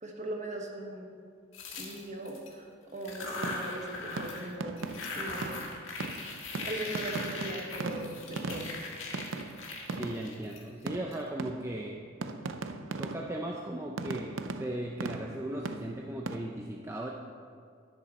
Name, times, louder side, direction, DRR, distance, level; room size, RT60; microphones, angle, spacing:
voice 1, 0.0-1.1 1.8-4.8 5.1-5.7 6.6-8.8, right 1 dB, 35° right, 1 dB, 1.3 m, -39 dB
sound 1, 1.5-2.5 3.0-4.5 4.8-11.1, left 3 dB, 85° left, 1.6 m, -40 dB
sound 2, 3.4-3.9 4.2-10.5 10.9-11.9 12.2-13.5 14.0-16.4, right 3 dB, 85° right, 0.6 m, -39 dB
voice 2, 10.0-12.0 13.0-17.1, right 1 dB, 15° right, -1 dB, 0.6 m, -37 dB
11.0 x 10.5 x 4.2 m, 2.1 s
head